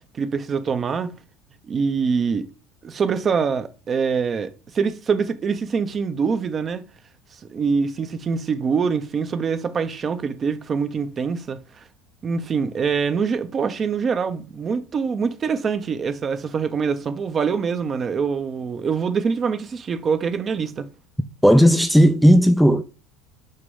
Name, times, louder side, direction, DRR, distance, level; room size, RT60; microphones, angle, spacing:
voice 1, 0.1-1.2 1.6-2.5 2.8-6.8 7.5-11.8 12.2-20.9, right 5 dB, 35° right, 0.7 m, -24 dB
voice 2, 21.4-22.8, equal, ahead, 0.4 m, -14 dB
6.5 x 3.0 x 5.4 m
supercardioid pair, 100°, 0 cm